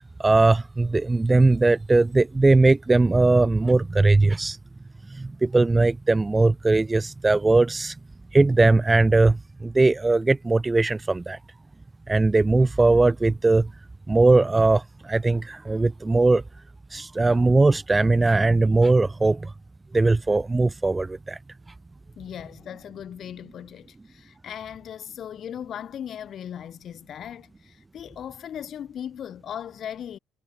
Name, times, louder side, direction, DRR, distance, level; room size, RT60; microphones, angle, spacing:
voice 1, 0.2-4.6 5.1-7.9 8.3-11.4 12.1-13.7 14.1-16.4 16.9-19.5 19.9-21.4, right 3 dB, 15° right, 1.0 m, -20 dB
voice 2, 22.2-30.2, left 9 dB, 55° left, 4.5 m, -38 dB
supercardioid pair, 85°, 0 cm